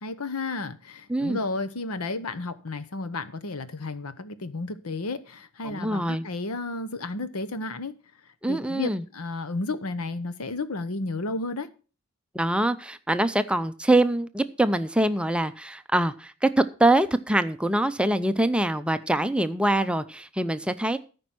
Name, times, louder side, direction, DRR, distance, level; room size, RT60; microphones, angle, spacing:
voice 1, 0.0-7.9 8.5-11.7, left 3 dB, 85° left, 0.9 m, -32 dB
voice 2, 5.6-6.2 8.4-9.0 12.3-21.0, right 1 dB, 5° right, 0.5 m, -24 dB
13.5 x 5.3 x 6.0 m
head